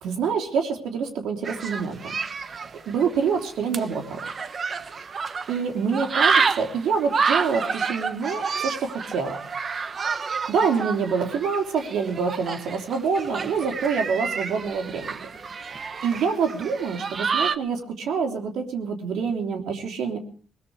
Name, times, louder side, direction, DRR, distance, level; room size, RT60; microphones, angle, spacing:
voice 1, 0.0-2.1 2.9-4.2 5.5-9.4 10.5-15.3 16.0-20.2, right 5 dB, 80° right, 3 dB, 3.3 m, -26 dB
sound 1, 1.4-5.6 5.9-17.6, right 5 dB, 45° right, 1.0 m, -28 dB
21.0 x 20.0 x 3.3 m, 0.41 s
cardioid pair, 90°, 0 cm